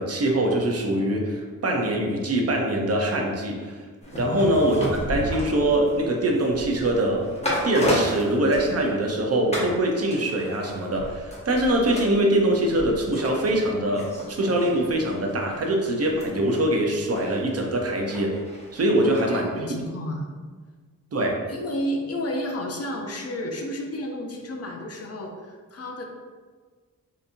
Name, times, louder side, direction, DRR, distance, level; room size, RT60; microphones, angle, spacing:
voice 1, 0.0-3.8 4.2-7.2 7.6-18.3 18.7-19.5 21.1-21.4, right 1 dB, 45° right, 1 dB, 0.6 m, -23 dB
sound 1, 4.0-9.2 9.5-9.8 10.1-19.2 19.5-19.6, equal, 20° left, 0.9 m, -33 dB
voice 2, 4.2-4.6 19.0-20.3 21.5-26.0, left 1 dB, 45° left, 1 dB, 0.5 m, -32 dB
3.9 x 2.7 x 2.5 m, 1.5 s
wide cardioid pair, 110°, 34 cm